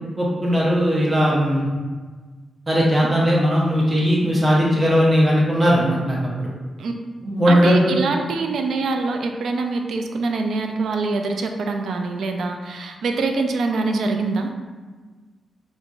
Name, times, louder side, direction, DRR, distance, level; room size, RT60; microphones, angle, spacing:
voice 1, 0.2-1.7 2.7-6.5 7.2-7.9, equal, 20° right, -5 dB, 0.7 m, -18 dB
voice 2, 7.5-14.5, right 3 dB, 80° right, 4 dB, 0.3 m, -24 dB
3.7 x 2.5 x 2.3 m, 1.4 s
wide cardioid pair, 115°, 0 cm